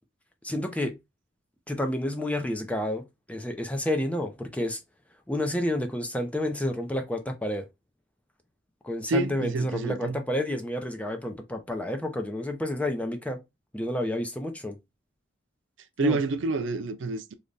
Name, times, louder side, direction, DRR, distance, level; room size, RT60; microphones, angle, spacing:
voice 1, 0.4-1.0 1.7-4.8 5.3-7.6 8.8-13.4 13.7-14.8 16.0-16.2, left 1 dB, 5° left, 0.6 m, -30 dB
voice 2, 9.1-10.2 16.0-17.3, right 3 dB, 75° right, 0.5 m, -28 dB
3.3 x 2.3 x 3.9 m
head